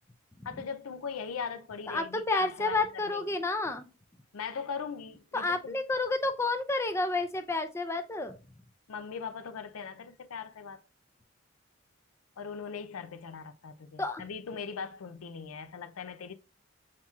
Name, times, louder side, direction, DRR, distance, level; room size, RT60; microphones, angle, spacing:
voice 1, 0.4-3.2 4.3-5.8 8.9-10.8 12.4-16.3, left 6 dB, 90° left, 0.5 m, -40 dB
voice 2, 1.9-3.9 5.3-8.3 14.0-14.2, left 2 dB, 15° left, 0.5 m, -30 dB
7.2 x 2.8 x 2.3 m
head